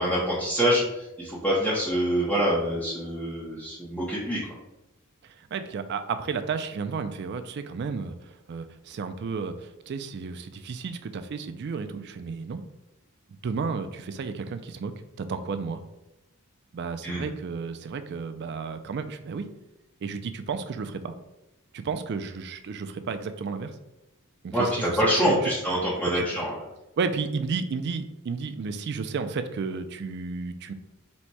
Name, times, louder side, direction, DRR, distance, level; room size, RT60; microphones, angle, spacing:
voice 1, 0.0-4.5 17.0-17.2 24.5-26.5, equal, 5° left, -8 dB, 0.7 m, -25 dB
voice 2, 5.2-12.6 13.4-14.9 15.2-15.8 16.7-19.5 20.0-21.2 21.7-23.7 24.4-25.3 26.1-26.2 27.0-30.7, right 5 dB, 50° right, 9 dB, 0.3 m, -32 dB
4.1 x 2.2 x 4.5 m, 0.94 s
head